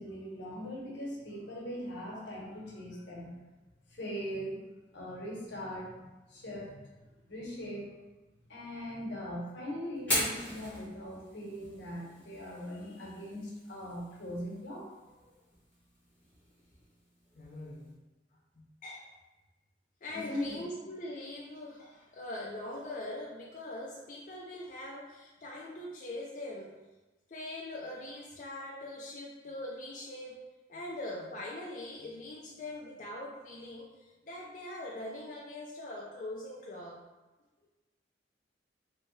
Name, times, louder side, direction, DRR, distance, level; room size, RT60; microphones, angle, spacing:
voice 1, 0.0-3.4 3.9-4.6 4.9-7.9 8.5-14.9 20.1-20.6, equal, 80° left, -4 dB, 1.0 m, -40 dB
Fire, 9.9-17.9, left 1 dB, 10° left, 1.2 m, -41 dB
voice 2, 17.4-18.0 18.6-19.1 20.0-26.7 27.3-30.4 30.7-37.0, left 1 dB, 45° left, -4 dB, 0.4 m, -42 dB
3.2 x 2.7 x 3.1 m, 1.1 s
head